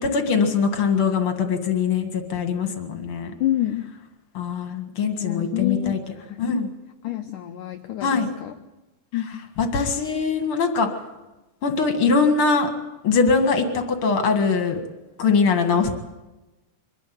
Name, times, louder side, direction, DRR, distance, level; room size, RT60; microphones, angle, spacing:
voice 1, 0.0-3.3 4.3-6.0 6.4-6.7 8.0-8.3 9.6-10.9 11.6-12.7 13.0-14.8 15.2-15.9, left 5 dB, 50° left, 6 dB, 1.8 m, -22 dB
voice 2, 3.4-3.9 5.2-6.5 7.0-8.5 9.1-9.4, left 13 dB, 90° left, 6 dB, 1.8 m, -28 dB
24.0 x 13.5 x 9.3 m, 1.1 s
omnidirectional pair, 4.9 m